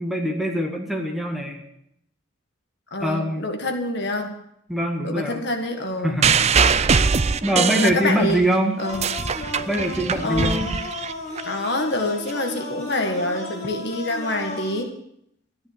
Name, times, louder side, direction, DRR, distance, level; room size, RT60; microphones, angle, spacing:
voice 1, 0.0-1.6 3.0-3.4 4.7-5.4 6.0-6.4 7.4-8.8 9.7-10.7, equal, ahead, 0 dB, 1.9 m, -23 dB
voice 2, 2.9-4.4 5.0-6.2 7.8-8.4 8.8-9.0 10.2-10.7 11.4-14.9, left 1 dB, 55° left, 5 dB, 1.7 m, -26 dB
sound 1, 6.2-8.4 8.8-11.4 12.3-12.4, right 5 dB, 30° right, 0.4 m, -21 dB
sound 2, 8.8-14.8, left 2 dB, 35° left, 2.8 m, -34 dB
13.5 x 10.5 x 6.9 m, 0.75 s
head